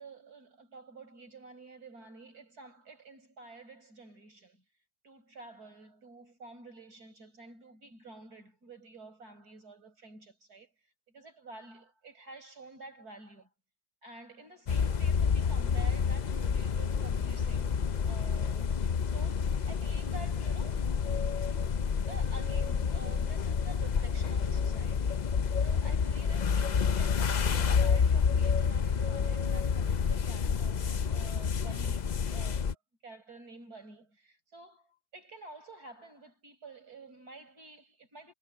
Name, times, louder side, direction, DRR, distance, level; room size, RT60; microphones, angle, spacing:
voice 1, 0.0-4.6 5.0-10.7 11.1-13.5 14.0-17.8 18.0-20.9 22.1-32.8 33.0-38.3, right 3 dB, 70° right, 6.8 m, -50 dB
sound 1, 14.7-32.7, left 6 dB, 85° left, 0.4 m, -29 dB
omnidirectional pair, 1.7 m